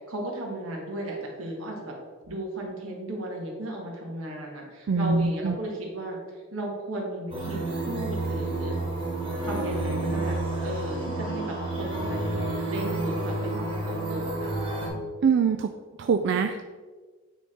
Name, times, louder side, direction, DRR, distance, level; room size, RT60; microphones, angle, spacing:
voice 1, 0.1-2.0 2.3-6.2 6.5-8.8 9.4-14.5, right 1 dB, 75° right, -1 dB, 1.7 m, -35 dB
voice 2, 4.9-5.6 15.2-15.7 16.0-16.6, right 5 dB, 55° right, 7 dB, 0.3 m, -23 dB
sound 1, 7.3-14.9, right 2 dB, 25° right, 1.8 m, -30 dB
8.9 x 3.5 x 4.3 m, 1.4 s
head